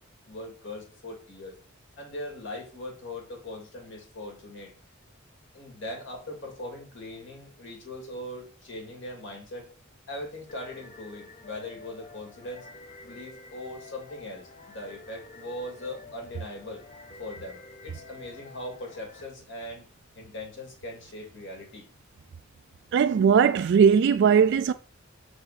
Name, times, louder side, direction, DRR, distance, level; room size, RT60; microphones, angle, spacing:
voice 1, 0.3-1.6 2.0-4.7 5.5-9.7 10.1-12.7 13.0-19.9 20.2-21.9, left 1 dB, 65° left, 2.5 m, -40 dB
sound 1, 10.5-19.2, left 3 dB, 35° left, 0.7 m, -49 dB
voice 2, 22.9-24.7, right 7 dB, 60° right, 0.3 m, -19 dB
6.1 x 4.9 x 4.1 m
head